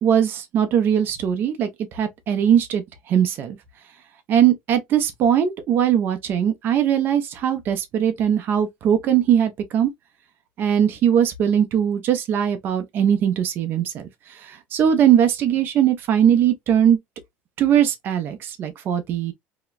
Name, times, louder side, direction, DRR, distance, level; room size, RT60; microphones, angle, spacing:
voice 1, 0.0-2.8 3.1-3.6 4.3-9.9 10.6-14.1 14.4-17.0 17.6-19.3, right 9 dB, 45° right, 0.6 m, -20 dB
2.9 x 2.1 x 2.2 m
cardioid pair, 140°, 5 cm